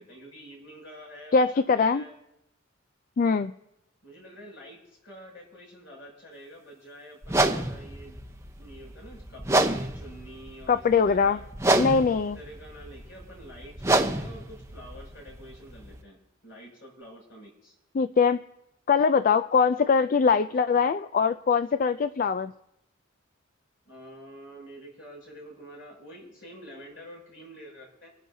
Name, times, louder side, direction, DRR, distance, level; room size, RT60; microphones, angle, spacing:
voice 1, 0.0-1.4 1.8-2.1 4.0-8.2 8.6-11.5 12.1-17.7 23.8-28.1, equal, 70° left, -2 dB, 6.4 m, -47 dB
voice 2, 1.3-2.0 3.2-3.5 10.7-11.4 11.8-12.4 17.9-18.4 18.9-22.5, left 5 dB, 45° left, 11 dB, 0.3 m, -22 dB
sound 1, 7.2-16.0, right 2 dB, 15° right, 0.8 m, -29 dB
25.0 x 11.0 x 2.7 m, 0.85 s
head